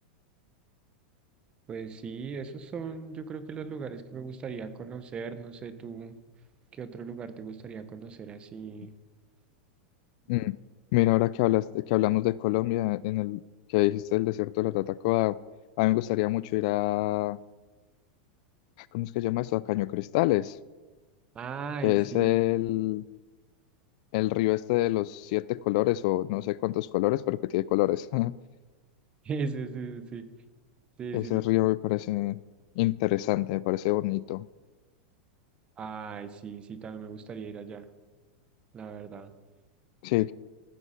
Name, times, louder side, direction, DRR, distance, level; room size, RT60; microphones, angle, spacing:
voice 1, 1.7-6.2 6.7-8.9 10.3-10.4 21.3-22.3 29.2-30.3 31.0-31.4 35.8-37.9 38.7-39.3, right 5 dB, 20° right, 11 dB, 1.0 m, -38 dB
voice 2, 10.9-13.4 13.7-15.4 15.8-17.4 18.9-20.5 21.8-23.0 24.1-28.3 31.1-32.4 32.8-34.5 40.0-40.3, left 18 dB, 55° left, 20 dB, 0.3 m, -26 dB
15.0 x 8.1 x 5.8 m, 1.2 s
supercardioid pair, 145°, 5 cm